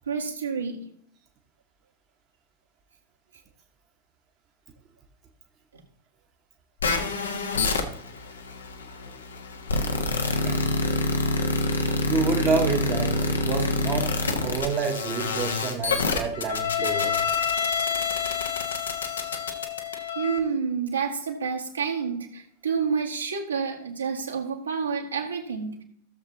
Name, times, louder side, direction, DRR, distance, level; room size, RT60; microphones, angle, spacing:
voice 1, 0.1-0.8 20.2-25.8, right 6 dB, 75° right, -1 dB, 1.9 m, -29 dB
sound 1, 6.8-20.4, left 3 dB, 70° left, 1.2 m, -27 dB
voice 2, 10.4-10.8 12.1-14.1 14.4-17.2, right 5 dB, 30° right, 3 dB, 1.2 m, -28 dB
16.0 x 7.1 x 2.8 m, 0.67 s
figure-of-eight pair, 90°, 0 cm